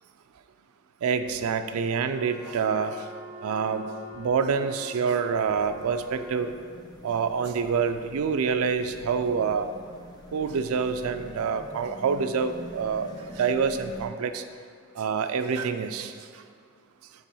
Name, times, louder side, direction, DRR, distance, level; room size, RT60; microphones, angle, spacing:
voice 1, 1.0-3.1 3.4-3.8 4.2-6.5 7.0-9.7 10.3-14.4 15.0-16.1, right 6 dB, 80° right, 8 dB, 0.4 m, -27 dB
Wind instrument woodwind instrument, 2.1-6.8, left 1 dB, 40° right, 1.1 m, -44 dB
sound 1, 5.3-14.1, left 1 dB, 20° left, 0.5 m, -46 dB
7.1 x 3.0 x 5.6 m, 2.2 s
head